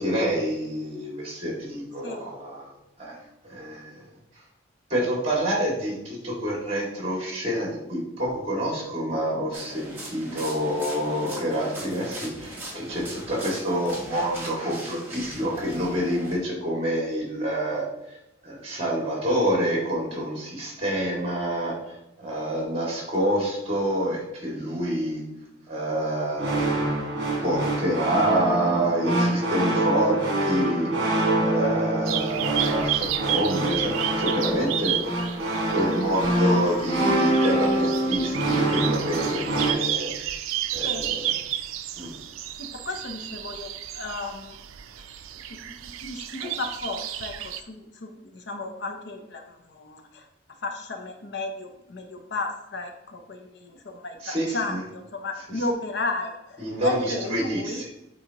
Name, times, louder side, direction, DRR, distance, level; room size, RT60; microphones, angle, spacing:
voice 1, 0.0-2.7 3.0-3.1 3.4-4.1 4.9-17.9 18.4-21.9 22.2-25.2 25.7-26.6 27.4-35.2 35.7-40.1 40.7-41.4 42.0-42.1 54.2-54.8 55.5-55.7 56.6-57.9, right 1 dB, 30° right, -3 dB, 2.1 m, -27 dB
sound 1, 9.5-16.4, right 1 dB, 10° right, 1.3 m, -40 dB
sound 2, 26.4-39.7, right 1 dB, 55° right, 1.5 m, -25 dB
sound 3, 32.1-47.6, right 11 dB, 90° right, 0.4 m, -32 dB
voice 2, 42.6-43.7 43.9-44.6 45.8-49.4 49.7-50.2 50.6-57.8, left 2 dB, 55° left, 4 dB, 0.6 m, -33 dB
8.6 x 4.1 x 2.9 m, 0.87 s
head